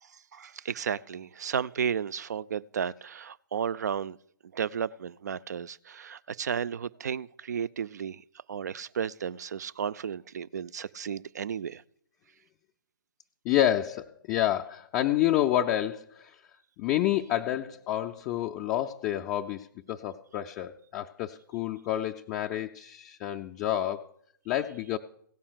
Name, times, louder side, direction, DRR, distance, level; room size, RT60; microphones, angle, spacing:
voice 1, 0.0-4.2 4.4-11.8, right 7 dB, 50° right, 0.4 m, -33 dB
voice 2, 13.4-16.4 16.8-24.1 24.5-25.0, left 12 dB, 20° left, 0.3 m, -29 dB
16.5 x 5.4 x 6.6 m
figure-of-eight pair, 130°, 11 cm